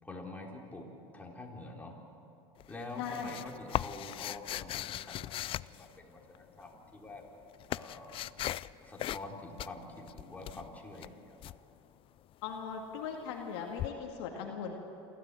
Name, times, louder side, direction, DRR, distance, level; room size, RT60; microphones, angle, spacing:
voice 1, 0.0-0.9 1.1-2.3 2.7-7.2 7.7-8.3 8.8-11.5, left 2 dB, 10° left, -1 dB, 4.1 m, -46 dB
sound 1, 2.6-6.4 7.1-8.7 9.0-9.3 9.6-11.6 13.8-13.9, left 13 dB, 40° left, 0.4 m, -38 dB
voice 2, 3.0-3.3 12.4-14.7, left 6 dB, 75° left, 1 dB, 2.2 m, -39 dB
28.0 x 13.5 x 7.8 m, 3.0 s
supercardioid pair, 100°, 14 cm